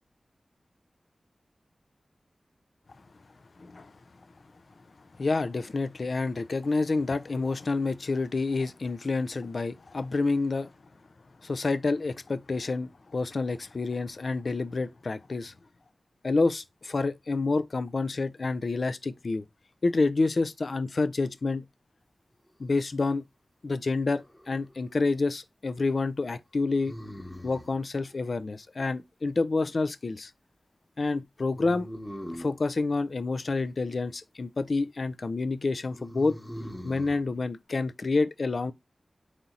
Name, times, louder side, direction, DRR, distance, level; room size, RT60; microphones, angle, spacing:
voice 1, 3.6-3.9 5.2-10.7 11.4-15.5 16.2-19.4 19.8-21.6 22.6-23.2 23.6-26.9 27.4-30.3 31.0-31.9 32.3-36.3 36.8-38.7, left 3 dB, 65° left, 0.4 m, -28 dB
sound 1, 24.1-24.8 26.8-27.8 31.6-32.6 35.9-37.2, equal, 15° left, 1.1 m, -41 dB
4.3 x 2.8 x 3.7 m
wide cardioid pair, 55°, 0 cm